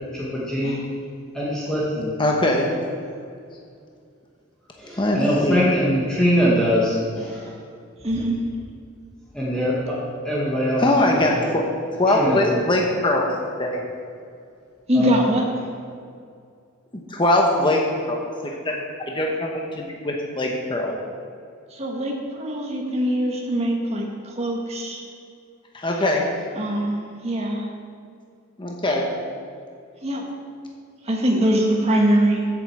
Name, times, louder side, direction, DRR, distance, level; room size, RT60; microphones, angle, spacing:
voice 1, 0.1-0.8 1.3-2.1 4.8-7.4 9.3-9.9 10.2-10.8 12.2-12.6 14.9-15.1, equal, 5° left, -8 dB, 1.7 m, -22 dB
voice 2, 2.2-2.7 5.0-5.6 10.8-11.6 12.0-13.3 13.6-13.8 16.9-18.2 18.4-18.7 19.1-21.0 25.7-26.3 28.6-29.1, left 1 dB, 25° left, 0 dB, 1.0 m, -21 dB
voice 3, 8.0-8.4 14.9-15.7 21.7-25.0 26.6-27.0 27.2-27.7 30.0-30.2 31.0-32.5, right 1 dB, 30° right, 0 dB, 1.5 m, -22 dB
8.0 x 7.7 x 7.4 m, 2.3 s
head